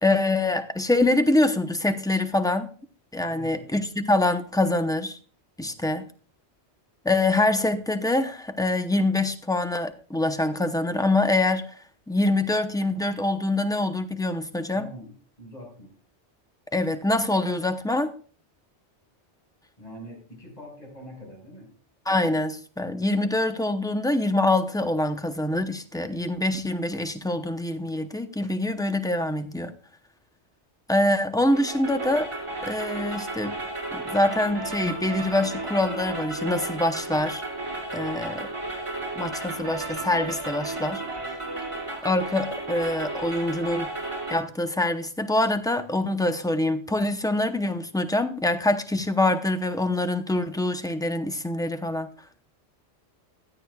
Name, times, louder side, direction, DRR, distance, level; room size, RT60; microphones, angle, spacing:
voice 1, 0.0-2.7 3.1-5.2 5.6-6.0 7.0-11.7 12.1-14.9 16.7-18.1 22.1-29.7 30.9-32.3 32.6-33.5 33.9-37.4 37.9-38.5 39.2-41.0 42.0-43.9 44.3-52.1, left 2 dB, 5° left, 0.5 m, -25 dB
voice 2, 3.3-3.7 5.7-5.9 14.7-15.9 19.8-21.7, equal, 35° left, 5.5 m, -44 dB
sound 1, 31.5-44.4, right 2 dB, 25° right, 2.8 m, -33 dB
16.0 x 11.0 x 2.3 m
omnidirectional pair, 1.2 m